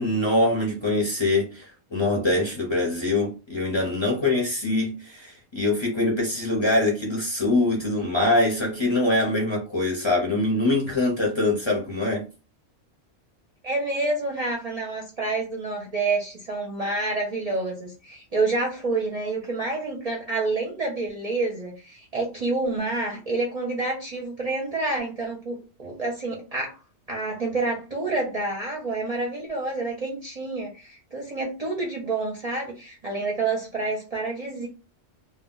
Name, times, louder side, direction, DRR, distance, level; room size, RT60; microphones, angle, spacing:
voice 1, 0.0-12.2, left 2 dB, 30° left, 0.6 m, -24 dB
voice 2, 13.6-26.8 27.1-34.7, right 3 dB, 45° right, 0.5 m, -28 dB
2.2 x 2.2 x 3.7 m
omnidirectional pair, 1.2 m